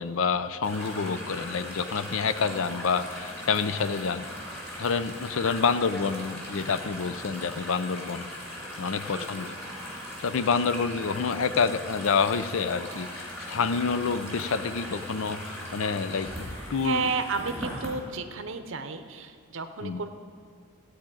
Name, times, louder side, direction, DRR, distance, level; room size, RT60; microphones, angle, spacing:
voice 1, 0.0-4.2 4.8-8.3 8.8-9.5 10.2-17.1 19.8-20.0, left 5 dB, 70° left, 12 dB, 0.5 m, -28 dB
sound 1, 0.6-17.9, equal, 10° left, 2.9 m, -39 dB
voice 2, 9.1-9.5 16.8-20.1, right 4 dB, 60° right, 7 dB, 0.7 m, -32 dB
15.0 x 5.0 x 8.9 m, 2.2 s
head